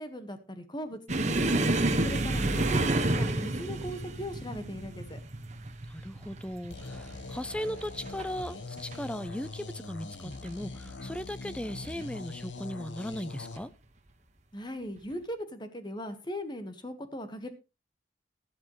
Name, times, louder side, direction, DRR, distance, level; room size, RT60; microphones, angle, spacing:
voice 1, 0.0-1.6 2.0-5.2 14.5-17.5, equal, 25° left, 1.5 m, -39 dB
sound 1, 1.1-8.3 8.6-9.0 9.3-9.5 10.3-10.9 11.9-12.1 13.4-13.6, right 2 dB, 40° right, 1.4 m, -30 dB
voice 2, 5.9-13.7, equal, 5° left, 0.5 m, -37 dB
sound 2, 6.7-13.6, left 3 dB, 85° left, 1.2 m, -42 dB
13.0 x 11.5 x 3.2 m
head